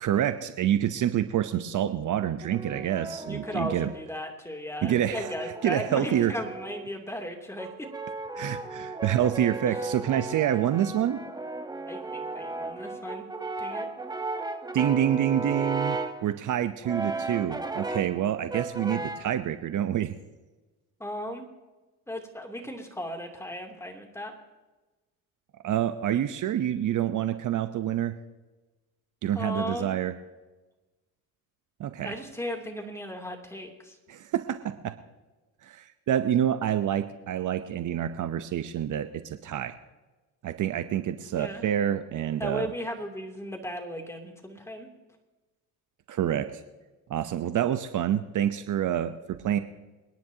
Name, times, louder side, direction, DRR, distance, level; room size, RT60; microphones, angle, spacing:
voice 1, 0.0-3.9 4.8-5.3 5.6-6.3 8.3-11.2 14.7-20.1 25.6-28.1 29.2-30.1 31.8-32.1 34.1-34.9 35.6-39.7 40.4-42.7 46.1-46.5 47.1-49.6, right 10 dB, 50° right, 10 dB, 0.9 m, -27 dB
Brass instrument, 2.2-4.1 4.9-6.9 7.6-16.3 16.8-18.2 18.5-19.3, right 3 dB, 10° right, 1.2 m, -35 dB
voice 2, 3.2-7.7 9.7-9.8 11.9-13.2 13.6-13.9 21.0-21.5 22.1-24.3 29.3-29.9 32.0-34.0 41.3-41.6 42.4-44.9, equal, 5° left, 2 dB, 2.9 m, -36 dB
27.5 x 10.5 x 2.9 m, 1.2 s
supercardioid pair, 85°, 38 cm